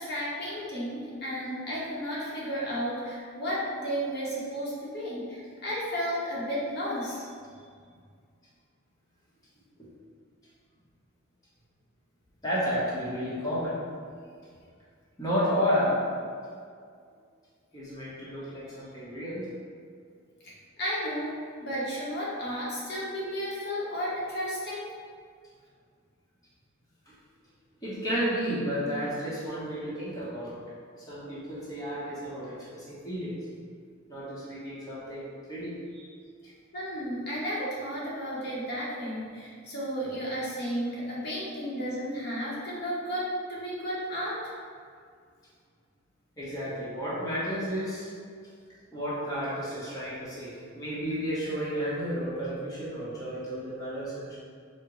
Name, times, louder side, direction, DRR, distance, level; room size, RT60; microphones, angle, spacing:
voice 1, 0.0-7.2 20.8-21.3 21.6-24.8 36.7-44.4, equal, 55° left, -7 dB, 0.9 m, -33 dB
voice 2, 12.4-13.8 15.2-16.0 17.7-19.5 27.8-30.6 31.0-33.3 34.1-36.1 46.4-48.1 48.9-54.4, equal, 20° left, -9 dB, 0.9 m, -32 dB
4.6 x 2.1 x 3.7 m, 2.1 s
head